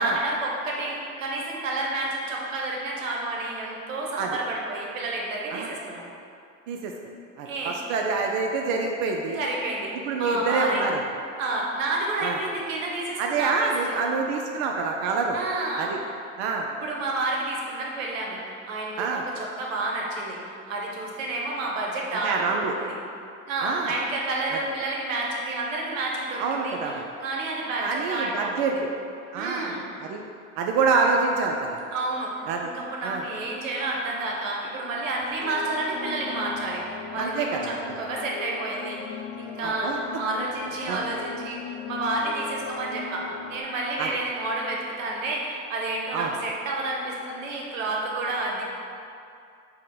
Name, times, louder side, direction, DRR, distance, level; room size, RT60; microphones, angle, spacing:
voice 1, 0.0-6.0 7.4-7.7 9.3-10.8 11.4-14.0 15.3-15.9 16.8-22.9 23.5-28.8 29.3-29.8 31.9-32.3 32.6-48.6, right 2 dB, 85° right, -2 dB, 0.8 m, -30 dB
voice 2, 7.4-9.4 10.1-11.0 12.2-12.4 13.2-15.4 15.8-16.0 16.4-16.7 19.0-19.2 22.2-22.7 23.6-23.9 26.4-27.0 27.8-28.8 29.3-30.2 30.6-31.8 32.5-32.7 33.0-33.2 37.2-37.7 39.6-40.0 40.9-41.0 44.0-44.1 46.1-46.3, right 4 dB, 55° right, 1 dB, 0.5 m, -26 dB
sound 1, 35.2-43.6, left 6 dB, 60° left, 0.5 m, -38 dB
4.4 x 2.1 x 3.7 m, 2.5 s
hypercardioid pair, 85°, 38 cm